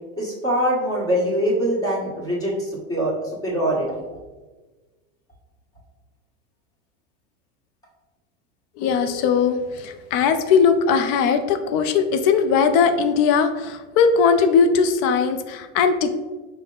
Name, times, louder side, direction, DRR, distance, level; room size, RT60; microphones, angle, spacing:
voice 1, 0.2-3.9, equal, 10° left, -6 dB, 1.3 m, -23 dB
voice 2, 8.8-16.1, left 6 dB, 50° left, 8 dB, 0.5 m, -19 dB
5.2 x 2.2 x 3.8 m, 1.3 s
supercardioid pair, 145°, 32 cm